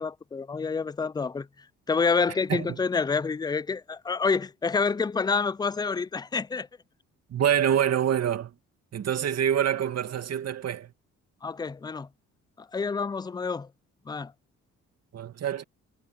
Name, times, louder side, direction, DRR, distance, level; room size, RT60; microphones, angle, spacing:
voice 1, 0.0-1.5 1.9-6.7 11.4-12.1 12.6-13.7 14.1-14.3, left 5 dB, 15° left, 0.4 m, -28 dB
voice 2, 7.3-8.5 8.9-10.9 15.1-15.6, right 9 dB, 55° right, 2.4 m, -26 dB
cardioid pair, 90°, 30 cm